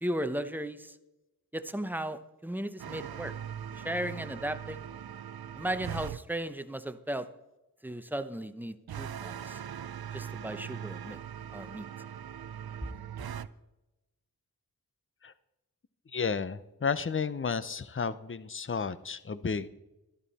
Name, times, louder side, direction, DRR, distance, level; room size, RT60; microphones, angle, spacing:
voice 1, 0.0-1.0 1.5-3.3 3.8-4.9 5.6-7.3 7.8-9.6 10.1-11.2 11.5-11.9, right 1 dB, 5° right, 10 dB, 0.8 m, -36 dB
sound 1, 2.8-6.2 8.9-13.5, right 9 dB, 70° right, 0.6 m, -40 dB
voice 2, 16.1-19.7, left 5 dB, 35° left, 15 dB, 0.7 m, -32 dB
12.5 x 12.0 x 4.2 m, 0.98 s
wide cardioid pair, 70°, 38 cm